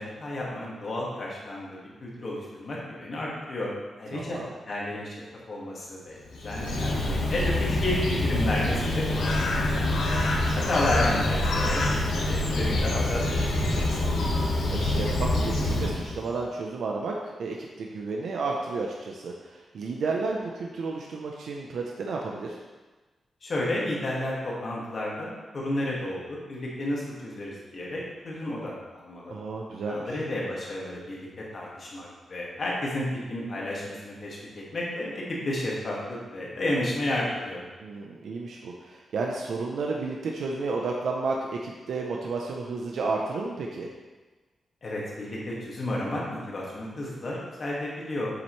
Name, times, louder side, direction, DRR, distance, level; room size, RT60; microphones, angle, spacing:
voice 1, 0.0-3.7 4.0-10.2 10.7-11.8 12.3-14.1 23.4-29.3 29.9-31.3 31.5-37.6 44.8-48.3, left 1 dB, 40° left, -5 dB, 2.0 m, -32 dB
voice 2, 4.1-4.5 10.5-10.6 14.7-22.6 29.3-30.2 37.8-43.9, right 3 dB, 70° right, 0 dB, 0.8 m, -32 dB
Bird, 6.2-16.3, left 1 dB, 90° left, 1.4 m, -26 dB
7.8 x 7.2 x 3.2 m, 1.2 s
wide cardioid pair, 170°, 0 cm